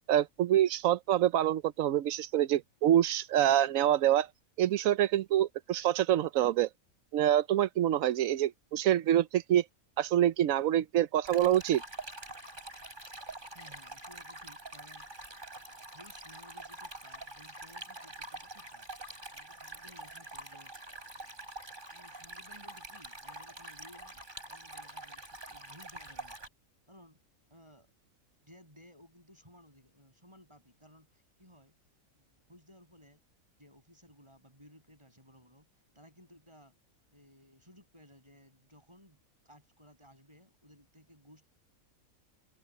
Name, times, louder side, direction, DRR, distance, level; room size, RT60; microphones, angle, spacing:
voice 1, 0.1-4.3 4.6-6.7 7.1-9.6 10.0-11.8, right 11 dB, 75° right, 1.0 m, -26 dB
Stream, 11.2-26.5, right 2 dB, 35° right, 5.2 m, -46 dB
voice 2, 13.5-15.1 15.5-18.9 19.3-20.7 21.1-21.4 21.9-26.4 26.9-27.2 27.5-27.9 28.4-31.7 32.1-33.2 33.6-35.7 35.9-36.7 37.1-39.2 39.4-41.5, equal, 20° right, 6.3 m, -58 dB
omnidirectional pair, 1.5 m